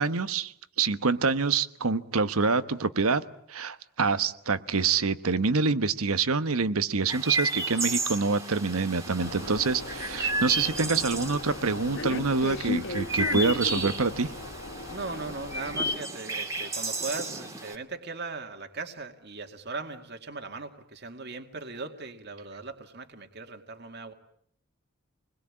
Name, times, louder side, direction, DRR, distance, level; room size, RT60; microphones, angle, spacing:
voice 1, 0.0-3.2 3.5-14.3, right 4 dB, 80° right, 12 dB, 1.2 m, -26 dB
Chirp tweet, 7.1-17.8, right 2 dB, 15° right, 2.3 m, -33 dB
sound 1, 9.2-16.0, left 2 dB, 55° left, 1.2 m, -36 dB
voice 2, 14.9-24.1, right 3 dB, 50° right, 5 dB, 2.2 m, -38 dB
28.0 x 21.5 x 8.8 m, 0.69 s
head